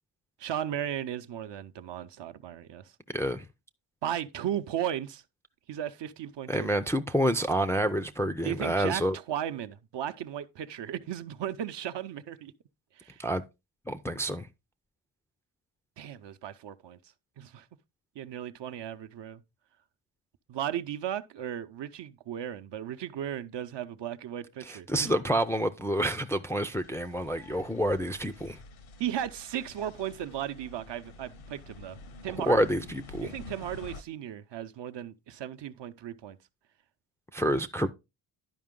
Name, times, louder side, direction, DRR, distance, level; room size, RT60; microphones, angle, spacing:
voice 1, 0.4-2.9 4.0-5.2 5.7-6.7 8.4-12.5 13.0-13.2 16.0-17.0 17.4-17.7 18.2-19.4 20.5-25.1 29.0-32.0 32.2-32.6 33.2-36.4, right 10 dB, 60° right, 0.7 m, -36 dB
voice 2, 3.1-3.4 6.5-9.2 13.2-13.4 13.9-14.5 24.6-28.6 32.5-33.3 37.3-37.9, equal, 5° left, 0.4 m, -28 dB
sound 1, 26.7-34.0, left 3 dB, 80° left, 1.0 m, -48 dB
11.0 x 5.1 x 3.7 m
cardioid pair, 100°, 48 cm